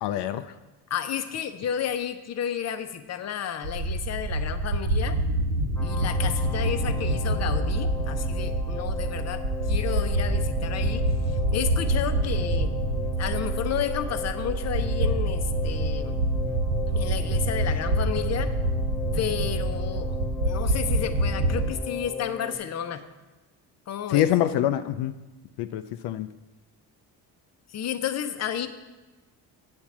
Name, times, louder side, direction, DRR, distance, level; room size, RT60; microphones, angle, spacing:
voice 1, 0.0-0.5 24.1-25.1 25.6-26.3, left 12 dB, 80° left, 10 dB, 0.5 m, -25 dB
voice 2, 0.9-5.2 5.8-12.7 13.2-16.2 16.9-18.5 19.1-20.2 20.4-23.0 23.9-24.2 27.7-28.7, left 9 dB, 40° left, 9 dB, 0.7 m, -32 dB
sound 1, 3.6-21.8, right 1 dB, 70° right, 1.1 m, -26 dB
sound 2, 5.8-22.6, left 6 dB, 10° left, 0.4 m, -37 dB
8.8 x 4.4 x 7.2 m, 1.1 s
cardioid pair, 125°, 40 cm